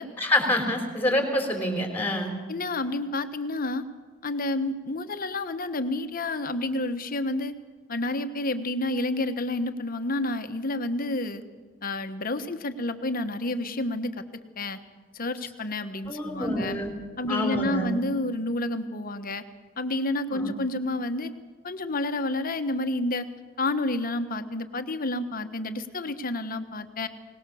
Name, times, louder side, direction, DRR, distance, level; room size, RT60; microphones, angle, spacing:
voice 1, 0.2-2.3 16.1-16.9 17.3-17.9 20.3-20.5, left 1 dB, 10° left, 4 dB, 4.1 m, -26 dB
voice 2, 2.5-3.9 4.2-7.5 7.9-11.4 11.8-14.8 15.1-16.7 17.2-19.4 19.8-21.3 21.6-23.3 23.6-27.1, left 2 dB, 45° left, 9 dB, 1.3 m, -29 dB
22.5 x 19.5 x 7.0 m, 1.4 s
head